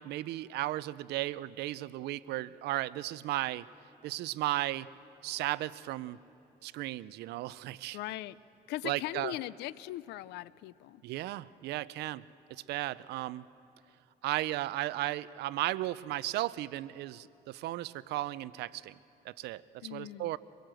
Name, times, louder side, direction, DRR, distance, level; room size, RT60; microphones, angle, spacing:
voice 1, 0.0-3.7 4.0-4.9 5.2-6.2 6.6-8.0 8.8-9.3 11.0-12.2 12.5-13.4 14.2-18.9 19.2-19.6 19.9-20.4, right 16 dB, 80° right, 19 dB, 0.5 m, -35 dB
voice 2, 7.9-8.4 8.7-11.0 19.8-20.4, left 16 dB, 85° left, 19 dB, 0.6 m, -39 dB
24.5 x 22.0 x 7.7 m, 2.7 s
cardioid pair, 110°, 17 cm